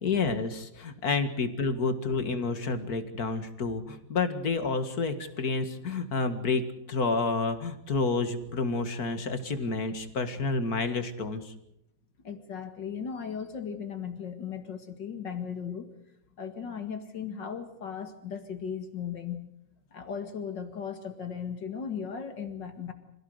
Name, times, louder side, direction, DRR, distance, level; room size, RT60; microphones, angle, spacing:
voice 1, 0.0-6.6 6.9-11.5, left 4 dB, 55° left, 9 dB, 2.4 m, -29 dB
voice 2, 12.2-15.9 16.4-19.5 19.9-22.9, left 7 dB, 70° left, 7 dB, 2.6 m, -37 dB
26.5 x 16.5 x 8.0 m, 0.79 s
omnidirectional pair, 2.0 m